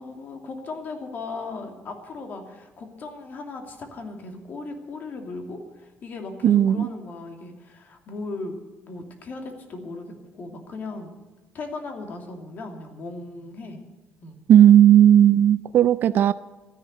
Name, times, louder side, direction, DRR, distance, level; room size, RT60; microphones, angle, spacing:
voice 1, 0.0-8.5 8.9-11.1 11.5-13.8 14.2-14.4, left 3 dB, 45° left, 4 dB, 2.7 m, -37 dB
voice 2, 6.4-6.9 14.5-16.3, right 10 dB, 50° right, 13 dB, 0.4 m, -15 dB
13.5 x 11.0 x 9.2 m, 1.2 s
cardioid pair, 140°, 4 cm